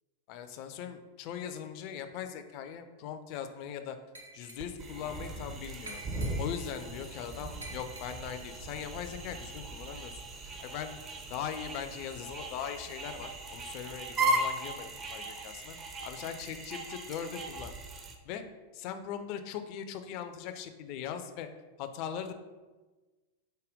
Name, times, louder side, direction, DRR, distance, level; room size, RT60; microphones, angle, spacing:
voice 1, 0.3-4.0 4.3-6.0 6.4-10.2 10.6-10.9 11.3-15.8 16.0-17.7 18.2-18.4 18.7-21.5 21.8-22.3, left 8 dB, 45° left, 8 dB, 0.3 m, -40 dB
Glass, 4.1-4.9 5.9-6.8 7.6-8.5, right 1 dB, 75° right, 0.6 m, -48 dB
sound 1, 4.6-18.2, right 2 dB, 25° right, 0.5 m, -37 dB
5.0 x 2.1 x 3.5 m, 1.2 s
figure-of-eight pair, 90°, 0 cm